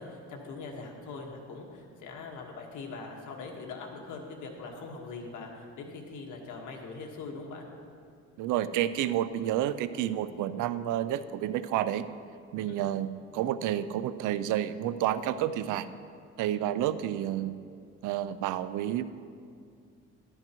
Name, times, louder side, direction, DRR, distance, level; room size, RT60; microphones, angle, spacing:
voice 1, 0.0-7.7 12.7-12.8, left 4 dB, 80° left, 1 dB, 1.6 m, -42 dB
voice 2, 8.4-12.1 12.5-15.9 16.4-17.5 18.0-19.0, right 11 dB, 90° right, 13 dB, 0.5 m, -30 dB
12.0 x 12.0 x 3.0 m, 2.3 s
cardioid pair, 90°, 30 cm